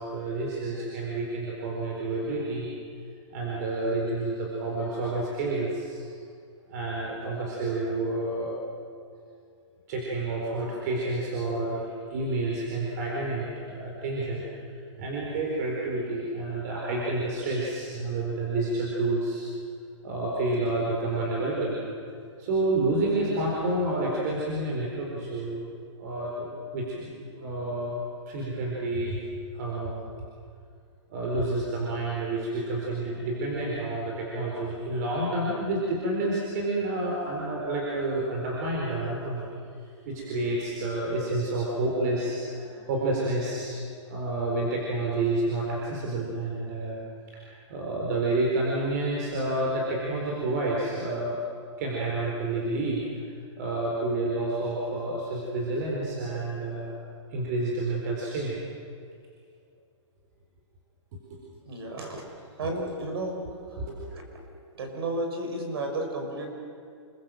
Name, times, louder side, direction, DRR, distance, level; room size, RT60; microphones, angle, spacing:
voice 1, 0.0-2.7 3.3-6.1 6.7-8.6 9.9-11.8 12.1-14.7 15.0-19.4 20.0-21.8 22.4-25.7 26.0-28.0 28.3-29.2 29.5-30.0 31.1-39.5 40.1-43.8 44.1-47.0 47.3-51.4 51.8-53.3 53.6-56.9 57.3-58.5 61.3-61.4 61.9-62.0 63.4-64.1, right 2 dB, 35° right, -3 dB, 4.3 m, -29 dB
voice 2, 61.7-62.3 62.6-63.4 64.1-64.2 64.8-66.5, right 2 dB, 50° right, 3 dB, 5.7 m, -32 dB
28.5 x 22.0 x 7.7 m, 2.3 s
hypercardioid pair, 175°, 16 cm